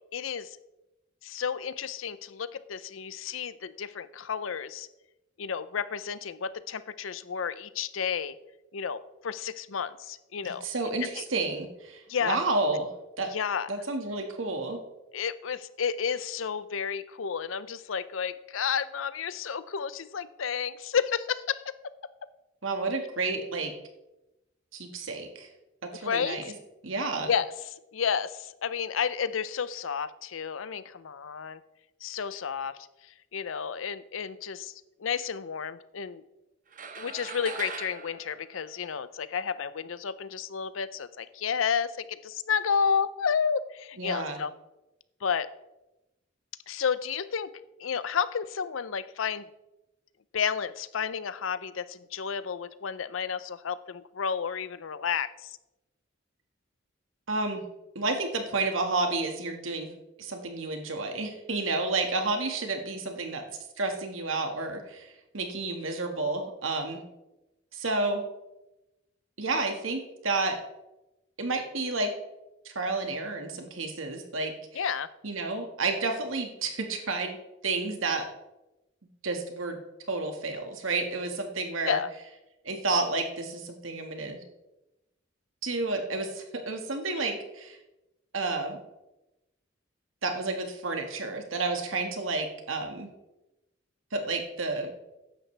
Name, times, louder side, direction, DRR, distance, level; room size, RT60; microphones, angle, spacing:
voice 1, 0.1-0.6 1.2-4.9 5.4-8.4 8.7-10.7 11.0-11.2 12.1-12.4 13.3-13.7 15.1-21.6 26.0-26.5 27.3-27.5 27.9-31.6 32.0-32.8 33.3-34.7 35.0-36.2 37.0-44.5 45.2-45.5 46.7-47.5 47.8-49.5 50.3-55.6 74.7-75.1 81.9-82.1, left 6 dB, 80° left, 15 dB, 0.6 m, -31 dB
voice 2, 10.4-12.9 13.2-13.3 13.7-14.8 22.6-23.7 24.7-25.5 25.8-26.4 26.8-27.3 44.0-44.4 57.3-57.6 58.0-59.9 60.2-63.4 63.8-67.0 67.7-68.2 69.4-70.6 71.4-72.1 72.7-74.9 75.2-77.4 77.6-78.3 79.2-79.8 80.1-82.0 82.6-84.4 85.6-87.8 88.3-88.8 90.2-93.1 94.1-94.9, right 3 dB, 90° right, 4 dB, 1.8 m, -30 dB
sound 1, 36.7-39.3, right 5 dB, 45° right, 1.0 m, -41 dB
14.5 x 10.5 x 3.4 m, 0.97 s
head